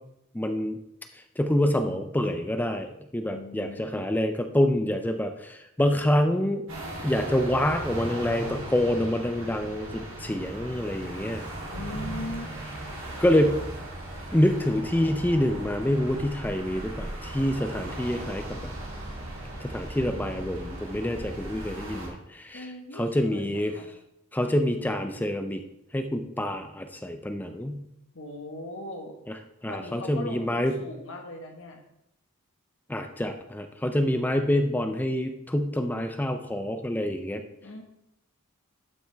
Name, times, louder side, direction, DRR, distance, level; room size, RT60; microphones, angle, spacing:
voice 1, 0.3-0.8 1.1-6.7 7.0-11.4 13.2-13.7 14.3-18.7 19.6-22.7 22.9-23.7 24.3-25.6 25.9-27.9 29.3-29.4 29.6-30.7 32.9-37.4, left 1 dB, 10° left, 6 dB, 0.4 m, -26 dB
voice 2, 3.3-4.0 11.7-12.5 22.5-23.9 28.1-29.1 29.6-31.8 37.6-37.8, left 1 dB, 60° left, 2 dB, 1.4 m, -39 dB
sound 1, 6.7-22.1, right 1 dB, 60° right, 2.9 m, -37 dB
12.0 x 6.0 x 3.4 m, 0.82 s
head